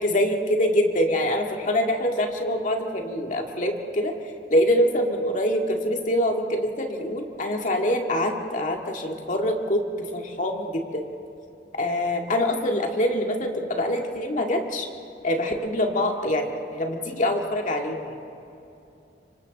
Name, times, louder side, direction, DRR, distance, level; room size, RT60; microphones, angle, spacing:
voice 1, 0.0-4.1 4.5-11.0 11.8-14.9 15.2-18.1, left 1 dB, 45° left, 2 dB, 2.0 m, -25 dB
26.0 x 24.5 x 4.1 m, 2.8 s
head